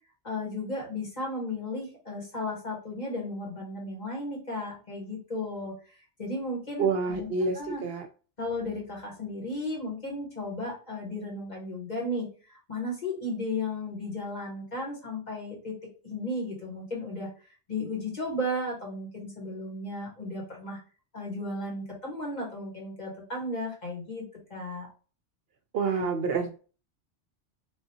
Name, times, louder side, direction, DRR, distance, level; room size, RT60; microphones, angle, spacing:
voice 1, 0.2-5.7 6.2-7.3 7.5-7.8 8.4-15.7 16.0-17.3 17.7-20.8 21.1-24.2 24.5-24.9, left 1 dB, 40° left, -3 dB, 1.5 m, -34 dB
voice 2, 6.8-8.1 25.7-26.6, right 4 dB, 65° right, 5 dB, 0.7 m, -28 dB
3.4 x 2.6 x 2.7 m, 0.36 s
omnidirectional pair, 1.2 m